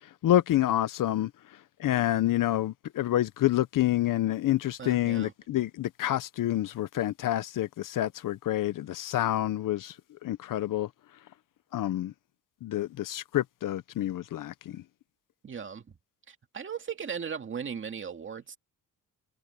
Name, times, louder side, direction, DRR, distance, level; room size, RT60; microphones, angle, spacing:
voice 1, 0.2-1.3 1.8-9.9 10.2-10.9 11.7-12.1 12.6-14.8, left 13 dB, 60° left, 0.8 m, -28 dB
voice 2, 4.8-5.3 15.4-15.9 16.3-18.6, right 7 dB, 30° right, 2.2 m, -37 dB
cardioid pair, 140°, 37 cm